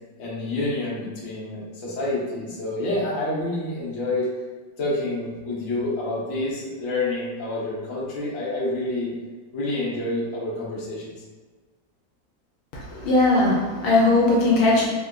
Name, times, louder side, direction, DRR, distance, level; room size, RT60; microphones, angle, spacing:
voice 1, 0.2-4.3 4.8-9.1 9.5-11.1, left 2 dB, 55° left, -6 dB, 1.0 m, -28 dB
voice 2, 12.7-14.9, left 2 dB, 75° left, -4 dB, 1.3 m, -19 dB
3.6 x 2.4 x 2.2 m, 1.4 s
omnidirectional pair, 2.2 m